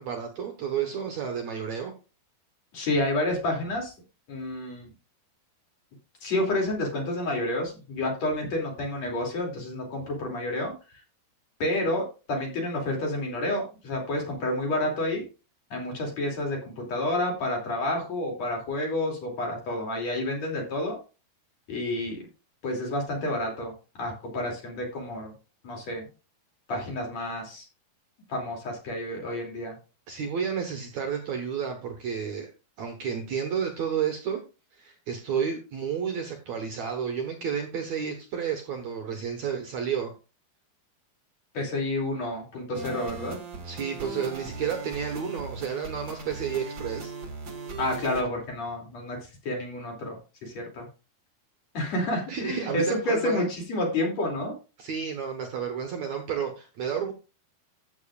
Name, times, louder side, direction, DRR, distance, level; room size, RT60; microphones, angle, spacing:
voice 1, 0.0-1.9 30.1-32.5 32.8-34.4 34.7-40.1 43.6-47.1 52.3-53.5 54.8-57.1, right 7 dB, 60° right, 4 dB, 2.1 m, -31 dB
voice 2, 2.7-3.9 4.3-4.9 6.2-10.7 11.6-15.2 15.7-21.0 21.7-22.2 22.6-23.7 24.0-25.3 25.6-26.1 26.7-27.6 28.3-29.8 41.5-43.4 47.8-49.2 49.5-50.9 51.7-54.5, left 1 dB, 45° left, 0 dB, 3.8 m, -29 dB
sound 1, 42.7-48.2, right 3 dB, 40° right, 2.1 m, -38 dB
14.0 x 7.8 x 2.5 m, 0.31 s
omnidirectional pair, 4.4 m